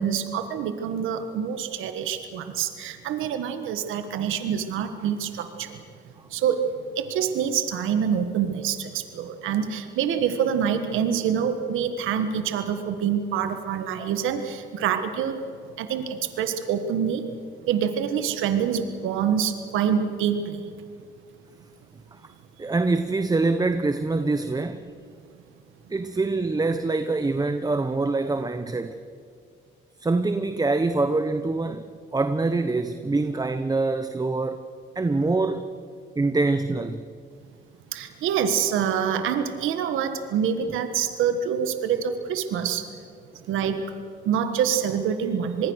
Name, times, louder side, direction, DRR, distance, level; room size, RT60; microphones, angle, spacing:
voice 1, 0.0-5.8 6.3-15.4 15.8-17.3 17.7-20.7 37.9-42.9 43.5-43.8 44.2-45.7, right 8 dB, 90° right, 1.5 m, -26 dB
voice 2, 22.6-24.9 25.9-29.0 30.0-31.8 32.1-34.7 34.9-35.6 36.2-37.0, right 3 dB, 20° right, 1.0 m, -24 dB
25.5 x 21.0 x 6.5 m
cardioid pair, 90°, 20 cm